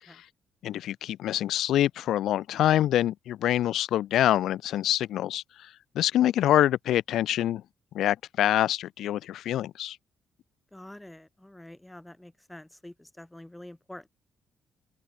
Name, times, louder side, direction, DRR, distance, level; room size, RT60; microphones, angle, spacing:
voice 1, 0.6-5.4 6.0-7.6 7.9-10.0, left 12 dB, 75° left, 0.3 m, -25 dB
voice 2, 10.7-14.1, left 1 dB, 5° left, 0.9 m, -47 dB
open air
cardioid pair, 140°, 0 cm